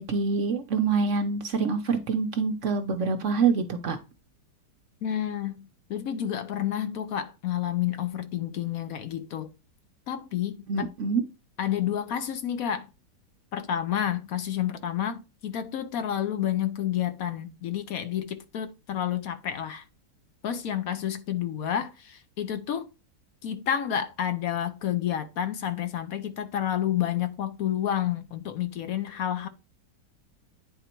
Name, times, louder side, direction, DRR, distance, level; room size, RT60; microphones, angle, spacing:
voice 1, 0.0-4.0 10.7-11.2, right 5 dB, 55° right, 0.9 m, -26 dB
voice 2, 5.0-9.5 10.1-10.9 11.6-12.9 13.5-19.8 20.4-22.9 23.4-29.5, left 10 dB, 65° left, 1.0 m, -30 dB
9.1 x 4.0 x 4.4 m
omnidirectional pair, 1.8 m